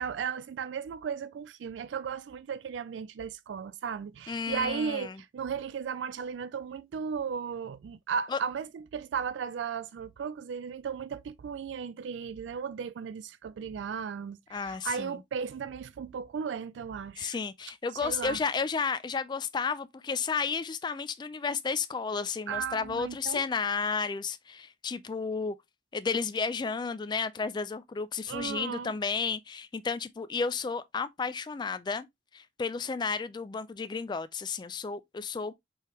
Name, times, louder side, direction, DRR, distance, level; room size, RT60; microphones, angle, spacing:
voice 1, 0.0-17.4 18.0-18.4 22.5-23.4 28.3-28.9, right 6 dB, 85° right, 0.3 m, -35 dB
voice 2, 4.3-5.2 8.3-8.4 14.5-15.2 17.2-25.5 25.9-32.1 32.3-35.5, left 5 dB, 25° left, 0.3 m, -32 dB
4.6 x 3.4 x 3.0 m
head